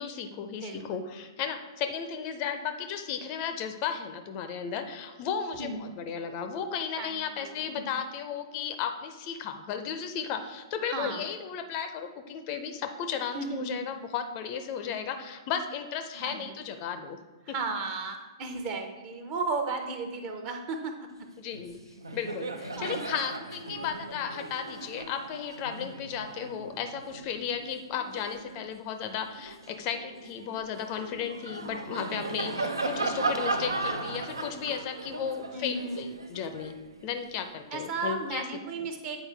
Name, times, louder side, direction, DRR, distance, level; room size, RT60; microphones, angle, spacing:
voice 1, 0.0-17.2 17.5-17.6 21.4-21.8 22.1-36.8 37.0-38.4, left 7 dB, 35° left, 8 dB, 0.5 m, -34 dB
voice 2, 5.6-6.0 7.0-7.8 10.9-11.2 13.3-13.8 16.1-16.4 17.4-21.1 22.8-23.0 35.5-36.1 37.7-39.2, right 3 dB, 30° right, 5 dB, 0.8 m, -34 dB
Laughter, 21.5-21.7 22.0-28.7 29.2-37.4, right 3 dB, 75° right, 0.5 m, -36 dB
8.5 x 4.3 x 3.3 m, 1.3 s
figure-of-eight pair, 110°, 2 cm